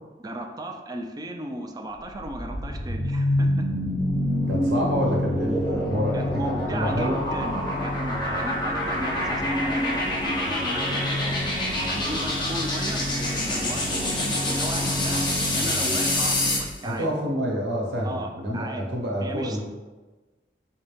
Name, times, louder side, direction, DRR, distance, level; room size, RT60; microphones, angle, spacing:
voice 1, 0.2-3.5 6.1-11.3 11.9-13.0 13.3-17.1 18.0-18.9 19.2-19.6, right 1 dB, 20° right, 3 dB, 0.4 m, -35 dB
sound 1, 1.9-16.7, left 1 dB, 25° left, 1.0 m, -26 dB
voice 2, 4.5-6.2 6.6-7.6 16.8-19.6, equal, 85° right, -2 dB, 1.1 m, -28 dB
5.3 x 2.9 x 3.4 m, 1.2 s
head